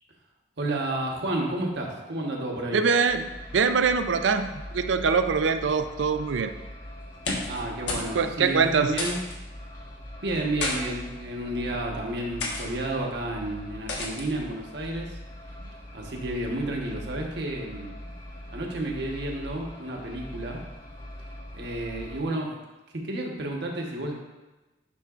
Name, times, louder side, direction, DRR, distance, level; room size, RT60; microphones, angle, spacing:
voice 1, 0.6-2.8 7.5-9.2 10.2-15.2 15.9-17.9 18.5-20.6 21.5-22.6 22.9-24.1, right 1 dB, 65° right, 0 dB, 1.2 m, -31 dB
voice 2, 2.7-3.3 3.5-6.5 8.1-8.9, right 5 dB, 85° right, 9 dB, 0.4 m, -23 dB
sound 1, 3.0-22.2, equal, 45° left, 2.0 m, -42 dB
sound 2, 7.1-7.6 7.9-8.1 8.4-8.5 9.0-9.4 10.3-10.8 11.5-11.8 12.4-12.7 13.9-14.2, left 2 dB, 80° left, 1.3 m, -31 dB
9.8 x 5.7 x 2.5 m, 1.1 s
head